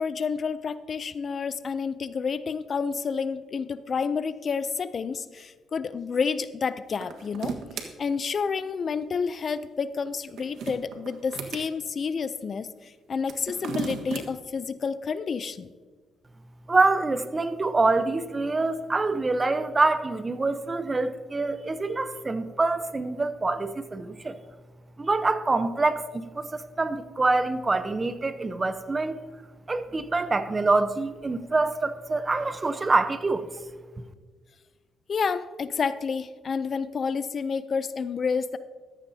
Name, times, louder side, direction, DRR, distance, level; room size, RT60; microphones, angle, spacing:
voice 1, 0.0-7.5 8.0-15.7 35.1-38.6, left 5 dB, 45° left, 14 dB, 0.5 m, -29 dB
sound 1, 6.9-7.9 10.1-11.7 13.2-14.3, right 6 dB, 75° right, 1.5 m, -35 dB
voice 2, 16.7-24.4 25.0-29.2 29.7-33.5, right 3 dB, 25° right, 11 dB, 0.8 m, -25 dB
14.5 x 14.0 x 2.8 m, 1.4 s
cardioid pair, 90°, 0 cm